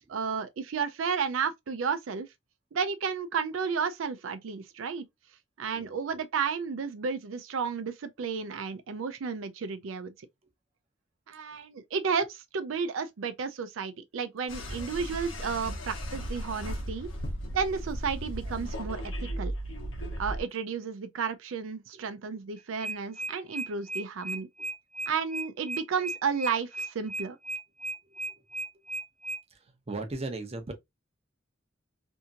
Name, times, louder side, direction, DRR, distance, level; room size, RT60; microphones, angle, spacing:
voice 1, 0.1-2.3 2.7-5.0 5.6-10.1 11.3-17.1 17.5-19.5 20.2-24.5 25.1-27.4, right 6 dB, 90° right, 0.4 m, -32 dB
sound 1, 14.5-20.4, equal, 75° left, 0.9 m, -36 dB
sound 2, 22.6-29.4, right 2 dB, 5° left, 0.4 m, -35 dB
voice 2, 29.5-30.7, right 2 dB, 30° right, 0.7 m, -38 dB
2.8 x 2.6 x 2.3 m
head